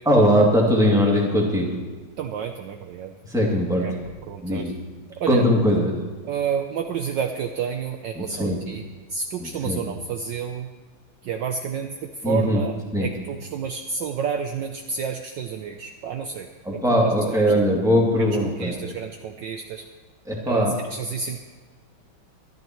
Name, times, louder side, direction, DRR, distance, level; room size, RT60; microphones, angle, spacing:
voice 1, 0.1-1.8 3.3-4.0 4.4-4.7 5.3-6.0 8.1-8.6 9.4-9.8 12.2-12.6 12.9-13.1 16.6-18.8 20.2-20.8, equal, ahead, -3 dB, 2.3 m, -20 dB
voice 2, 2.2-3.1 3.8-3.9 4.3-4.7 5.2-5.4 6.2-8.8 9.1-10.7 11.2-12.7 13.0-17.5 18.2-19.8 20.5-21.4, right 7 dB, 70° right, 5 dB, 1.3 m, -30 dB
24.0 x 11.0 x 3.1 m, 1.4 s
omnidirectional pair, 2.3 m